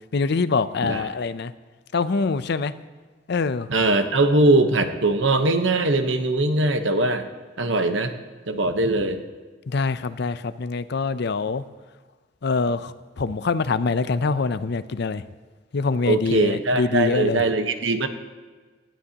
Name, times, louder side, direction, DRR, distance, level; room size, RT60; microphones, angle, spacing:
voice 1, 0.1-1.5 1.9-2.7 3.3-3.7 9.7-11.6 12.4-15.2 15.7-17.4, left 4 dB, 60° left, 13 dB, 0.5 m, -24 dB
voice 2, 3.7-7.3 7.6-8.1 8.5-9.2 16.1-18.1, right 2 dB, 80° right, 7 dB, 1.1 m, -21 dB
19.0 x 14.0 x 2.9 m, 1.4 s
head